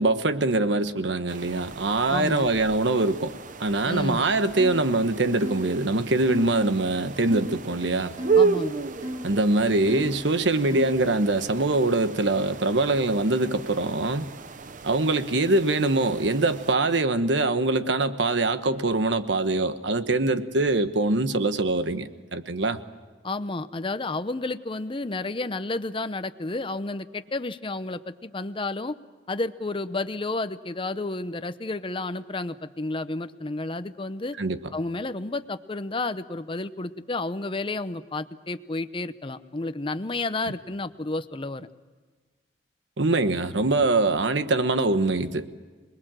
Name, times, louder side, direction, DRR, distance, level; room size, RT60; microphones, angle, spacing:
voice 1, 0.0-3.3 3.6-8.1 9.2-14.3 14.8-22.8 34.4-34.6 43.0-45.5, right 2 dB, 80° right, 10 dB, 1.2 m, -23 dB
sound 1, 1.3-16.7, right 5 dB, 45° right, 0.8 m, -33 dB
voice 2, 2.1-2.5 3.8-4.2 8.3-8.9 23.2-29.0 29.3-34.4 34.7-41.7, left 2 dB, 30° left, 11 dB, 0.8 m, -31 dB
sound 2, 4.6-4.8 5.4-5.7 6.3-6.5 7.3-7.6 8.2-8.4 9.0-9.3 9.9-10.2 10.7-11.0, equal, 25° right, 3.4 m, -34 dB
26.5 x 21.0 x 7.6 m, 1.4 s
head